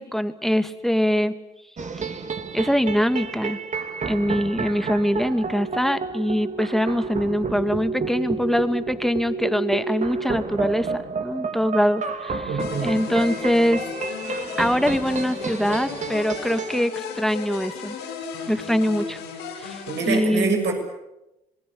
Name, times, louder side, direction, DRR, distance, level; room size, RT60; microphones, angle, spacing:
voice 1, 0.0-1.3 2.0-2.2 2.5-3.6 4.1-12.5 12.8-13.8 14.6-18.0 18.5-19.2 19.6-20.6, equal, ahead, 10 dB, 2.2 m, -23 dB
sound 1, 1.8-16.8, right 4 dB, 40° right, 3.0 m, -30 dB
voice 2, 12.5-12.9 19.9-20.7, right 4 dB, 70° right, 4 dB, 7.1 m, -25 dB
sound 2, 12.6-20.1, left 6 dB, 85° left, 7.8 m, -35 dB
27.0 x 20.5 x 8.6 m, 0.92 s
hypercardioid pair, 55°, 18 cm